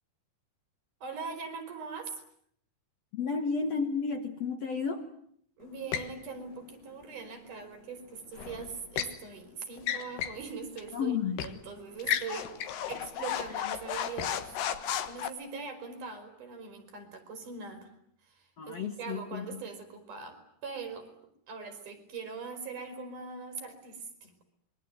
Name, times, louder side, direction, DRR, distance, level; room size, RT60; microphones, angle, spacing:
voice 1, 1.0-2.2 5.6-11.1 11.4-12.5 12.9-17.9 18.2-21.1 21.5-24.4, right 5 dB, 55° right, 7 dB, 5.6 m, -42 dB
voice 2, 3.1-5.1 10.9-11.4 18.6-19.6, left 5 dB, 55° left, 6 dB, 2.1 m, -32 dB
sound 1, 5.9-6.2 8.4-9.2 9.8-10.4 10.8-10.9 11.4-11.6 12.0-15.3, left 10 dB, 85° left, 3.5 m, -34 dB
26.5 x 23.0 x 9.4 m, 0.66 s
omnidirectional pair, 4.5 m